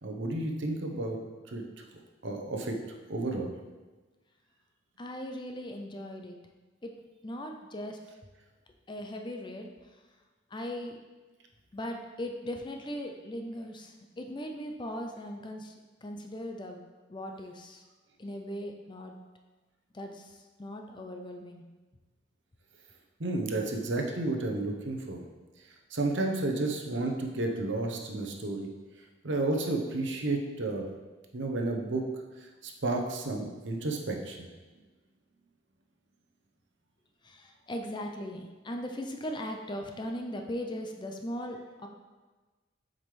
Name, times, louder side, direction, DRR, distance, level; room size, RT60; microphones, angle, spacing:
voice 1, 0.0-1.2 1.5-1.6 2.2-2.8 3.1-3.5 23.2-25.2 25.9-28.7 29.2-30.8 31.3-32.0 32.6-34.4, right 2 dB, 65° right, 2 dB, 0.9 m, -31 dB
voice 2, 5.0-6.4 6.8-6.9 7.2-8.0 8.9-9.7 10.5-11.0 11.7-15.7 16.0-16.8 17.1-17.8 18.2-19.2 19.9-21.6 37.2-41.9, equal, 25° left, 3 dB, 0.5 m, -39 dB
7.5 x 5.2 x 3.3 m, 1.3 s
head